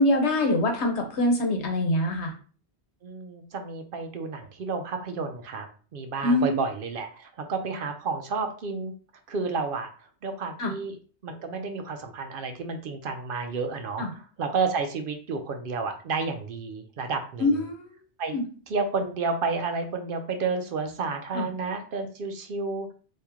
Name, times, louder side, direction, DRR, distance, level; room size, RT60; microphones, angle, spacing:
voice 1, 0.0-2.3 6.2-6.5 10.6-10.7 14.0-14.1 17.4-17.9 18.3-18.4 21.3-21.5, left 1 dB, 85° left, 4 dB, 1.1 m, -24 dB
voice 2, 3.0-5.7 5.9-8.9 9.3-17.6 18.2-18.4 18.7-22.9, right 4 dB, 60° right, 6 dB, 0.7 m, -31 dB
2.9 x 2.8 x 3.5 m, 0.39 s
omnidirectional pair, 1.1 m